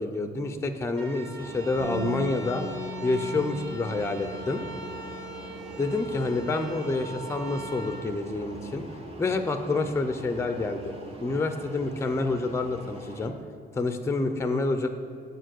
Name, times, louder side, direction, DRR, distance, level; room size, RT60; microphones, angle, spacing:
voice 1, 0.0-2.6 3.0-4.6 5.8-8.9 9.2-10.9 11.2-13.3 13.7-14.9, left 3 dB, 15° left, 8 dB, 0.5 m, -28 dB
sound 1, 0.9-9.0, right 4 dB, 90° right, 1.0 m, -42 dB
sound 2, 1.4-13.3, right 1 dB, 30° right, 1.0 m, -44 dB
Bass guitar, 1.8-8.0, left 2 dB, 65° right, 1.4 m, -40 dB
6.6 x 4.4 x 6.2 m, 2.3 s
cardioid pair, 90°, 20 cm